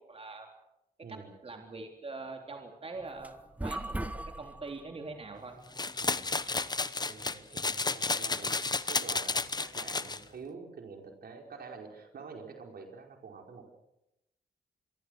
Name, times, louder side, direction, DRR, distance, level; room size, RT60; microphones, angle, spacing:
voice 1, 0.1-0.5 1.1-5.6, right 3 dB, 35° right, 3 dB, 3.7 m, -43 dB
voice 2, 1.0-1.4 6.0-6.3 6.7-13.7, right 5 dB, 75° right, 3 dB, 4.8 m, -47 dB
sound 1, 2.9-10.5, right 1 dB, 10° right, 1.3 m, -43 dB
sound 2, 5.8-10.2, left 3 dB, 25° left, 1.0 m, -32 dB
26.5 x 23.5 x 6.5 m, 0.89 s
cardioid pair, 95°, 16 cm